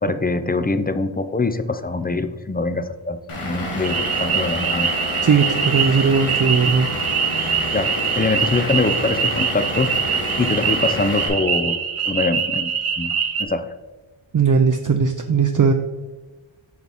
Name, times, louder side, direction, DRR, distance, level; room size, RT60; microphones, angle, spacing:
voice 1, 0.0-4.9 7.7-11.8 12.0-13.1 13.4-13.7, left 3 dB, 20° left, 10 dB, 0.4 m, -24 dB
Vehicle / Engine, 3.3-11.3, left 1 dB, 85° left, 1.5 m, -28 dB
sound 1, 3.8-13.4, right 7 dB, 85° right, 0.7 m, -24 dB
voice 2, 5.2-6.9 14.3-15.7, right 5 dB, 45° right, 6 dB, 0.5 m, -18 dB
6.3 x 5.9 x 3.5 m, 1.2 s
wide cardioid pair, 55°, 49 cm